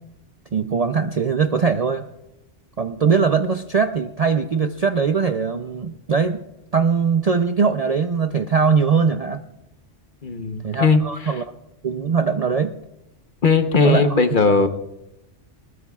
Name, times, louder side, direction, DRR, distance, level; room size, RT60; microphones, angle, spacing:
voice 1, 0.5-2.0 2.8-6.4 6.7-9.4 10.6-11.4 11.8-12.7 13.8-14.0, right 5 dB, 45° right, 7 dB, 0.5 m, -21 dB
voice 2, 10.2-11.4 13.4-14.7, left 4 dB, 45° left, 7 dB, 1.1 m, -18 dB
22.0 x 20.0 x 2.4 m, 0.88 s
omnidirectional pair, 1.2 m